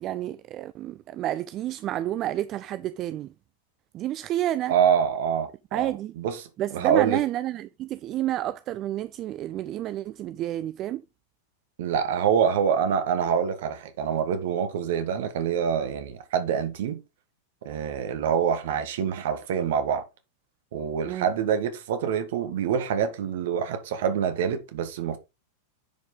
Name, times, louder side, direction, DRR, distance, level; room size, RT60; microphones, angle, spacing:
voice 1, 0.0-3.3 3.9-4.8 5.7-6.1 6.6-11.0 21.1-21.3, right 13 dB, 35° right, 0.4 m, -30 dB
voice 2, 4.7-5.9 6.2-7.2 11.8-17.0 17.6-20.0 20.7-25.2, right 7 dB, 55° right, 1.7 m, -26 dB
10.0 x 4.9 x 3.8 m
figure-of-eight pair, 90°, 0 cm